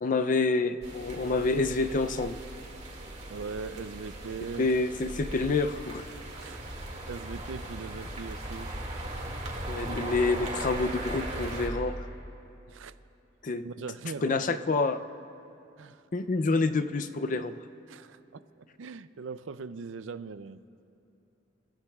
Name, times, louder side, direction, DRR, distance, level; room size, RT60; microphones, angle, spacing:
voice 1, 0.0-2.4 4.6-6.1 9.7-12.0 13.4-13.7 14.2-15.0 16.1-17.5, left 3 dB, 40° left, 10 dB, 0.4 m, -27 dB
sound 1, 0.8-11.7, right 1 dB, 35° right, 2.1 m, -38 dB
voice 2, 3.3-4.7 6.4-8.7 12.7-13.0 13.6-14.6 15.8-16.0 17.9-20.6, right 4 dB, 80° right, 14 dB, 0.4 m, -40 dB
28.5 x 14.5 x 2.4 m, 2.9 s
head